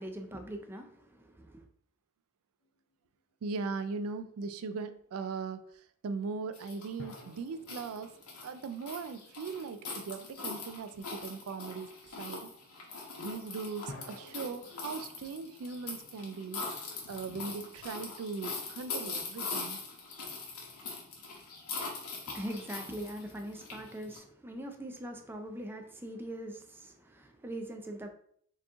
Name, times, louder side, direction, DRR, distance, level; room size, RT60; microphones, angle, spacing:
voice 1, 0.0-1.6 22.3-28.1, right 1 dB, 10° right, 4 dB, 0.5 m, -42 dB
sound 1, 2.6-3.3 7.0-9.8 13.9-17.1, left 2 dB, 65° left, 0.7 m, -53 dB
voice 2, 3.4-8.1 8.4-11.9 12.2-12.5 13.2-16.6 17.1-19.8, right 4 dB, 70° right, 10 dB, 0.4 m, -39 dB
sound 2, 6.5-24.2, left 4 dB, 80° left, 1.2 m, -42 dB
4.6 x 2.9 x 3.6 m, 0.63 s
head